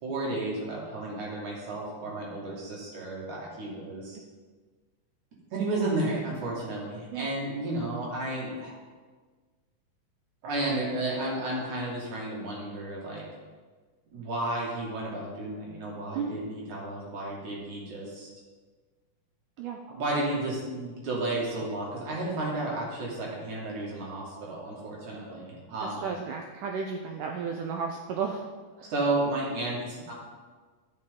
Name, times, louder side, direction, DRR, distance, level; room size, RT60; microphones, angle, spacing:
voice 1, 0.0-4.2 5.5-8.7 10.4-13.2 14.1-18.3 19.9-26.1 28.9-30.1, right 2 dB, 55° right, -4 dB, 3.1 m, -32 dB
voice 2, 25.8-28.4 28.8-28.9, right 6 dB, 90° right, 3 dB, 1.8 m, -33 dB
12.5 x 6.5 x 3.7 m, 1.4 s
omnidirectional pair, 4.4 m